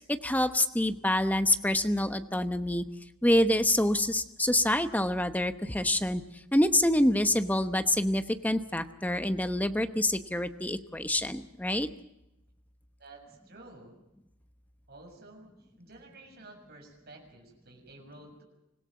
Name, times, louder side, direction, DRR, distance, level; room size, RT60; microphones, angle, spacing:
voice 1, 0.0-2.8 3.2-6.2 6.5-11.9, left 1 dB, 10° left, 9 dB, 1.0 m, -26 dB
voice 2, 13.0-13.9 14.9-15.5 15.8-18.4, right 2 dB, 50° right, 2 dB, 6.9 m, -51 dB
26.0 x 17.0 x 7.5 m, 0.90 s
head